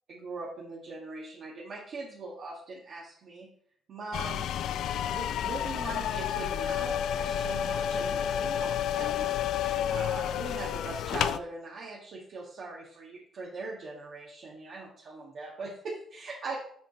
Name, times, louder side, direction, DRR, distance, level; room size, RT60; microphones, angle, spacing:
voice 1, 0.1-3.5 3.9-4.5 4.8-16.6, right 3 dB, 60° right, -4 dB, 1.6 m, -41 dB
sound 1, 4.1-11.4, left 9 dB, 80° left, 0.3 m, -30 dB
7.4 x 4.7 x 4.2 m, 0.62 s
cardioid pair, 90°, 0 cm